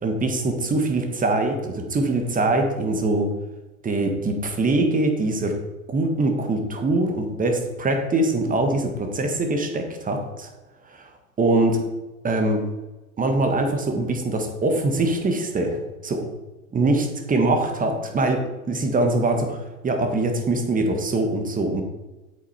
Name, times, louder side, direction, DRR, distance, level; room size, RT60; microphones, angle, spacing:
voice 1, 0.0-3.3 3.8-5.6 5.9-10.5 10.9-11.1 11.4-11.8 12.2-12.6 13.2-16.3 16.7-21.8, right 2 dB, 20° right, 4 dB, 1.5 m, -23 dB
8.3 x 8.1 x 4.3 m, 1.1 s
figure-of-eight pair, 95°, 44 cm